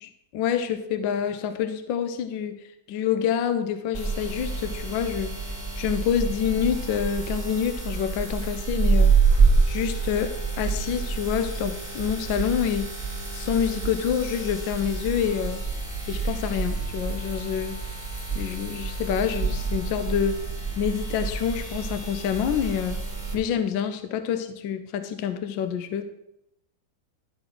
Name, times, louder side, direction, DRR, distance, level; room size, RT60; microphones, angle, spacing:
voice 1, 0.0-5.5 5.8-9.1 9.7-12.9 13.3-15.6 16.1-17.8 18.3-20.4 20.8-23.0 23.3-26.0, left 8 dB, 75° left, 9 dB, 1.3 m, -27 dB
sound 1, 3.9-23.3, right 4 dB, 15° left, 2.2 m, -27 dB
11.5 x 4.3 x 6.1 m, 0.82 s
omnidirectional pair, 2.1 m